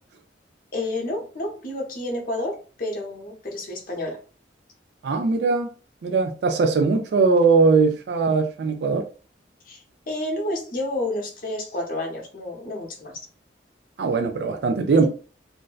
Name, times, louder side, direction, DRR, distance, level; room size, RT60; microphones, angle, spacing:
voice 1, 0.7-4.2 9.6-13.2, left 1 dB, 50° left, 0.8 m, -30 dB
voice 2, 5.0-5.7 6.0-9.0 14.0-15.1, right 4 dB, 65° right, 0.3 m, -20 dB
2.6 x 2.1 x 2.3 m
head